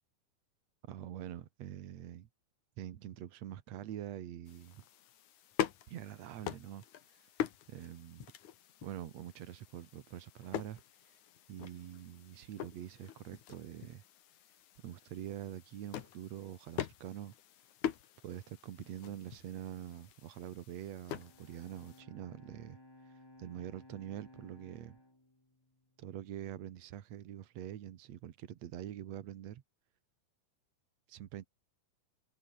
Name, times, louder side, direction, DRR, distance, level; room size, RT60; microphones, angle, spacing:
voice 1, 0.9-2.3 2.8-4.8 5.9-7.3 7.7-8.3 8.8-11.2 11.5-14.0 14.8-17.3 18.2-25.0 26.0-29.6 31.1-31.5, right 11 dB, 60° right, 1.9 m, -45 dB
sound 1, 4.5-22.0, left 11 dB, 60° left, 2.6 m, -44 dB
Bowed string instrument, 20.8-26.2, left 1 dB, 10° left, 1.5 m, -59 dB
omnidirectional pair, 4.5 m